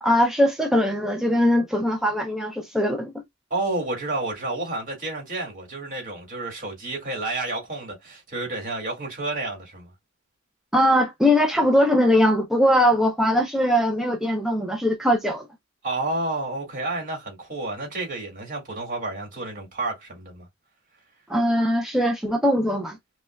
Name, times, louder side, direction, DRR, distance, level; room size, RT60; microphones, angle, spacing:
voice 1, 0.0-3.2 10.7-15.5 21.3-23.0, equal, ahead, 0.5 m, -21 dB
voice 2, 3.5-9.9 15.8-20.5, right 2 dB, 45° right, 2.0 m, -30 dB
5.4 x 2.3 x 2.2 m
head